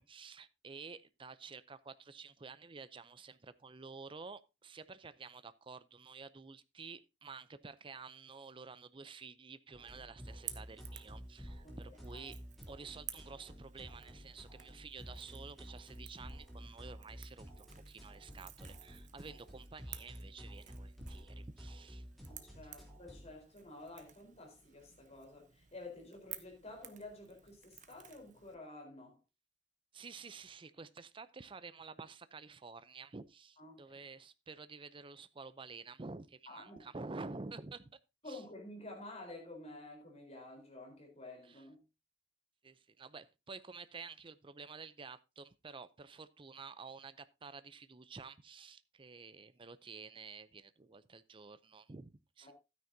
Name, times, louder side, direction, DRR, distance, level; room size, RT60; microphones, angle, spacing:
voice 1, 0.0-12.4 12.7-22.0 22.6-22.7 29.9-38.0 38.3-38.4 41.4-41.6 42.6-52.5, right 4 dB, 30° right, 0.6 m, -50 dB
sound 1, 9.7-23.3, equal, ahead, 3.2 m, -51 dB
Crackle / Crack, 10.2-28.5, right 11 dB, 45° right, 1.0 m, -54 dB
voice 2, 22.3-29.2 33.6-33.9 36.5-36.8 38.2-41.8 52.4-52.5, left 2 dB, 40° left, 4.1 m, -51 dB
13.0 x 9.4 x 2.7 m
head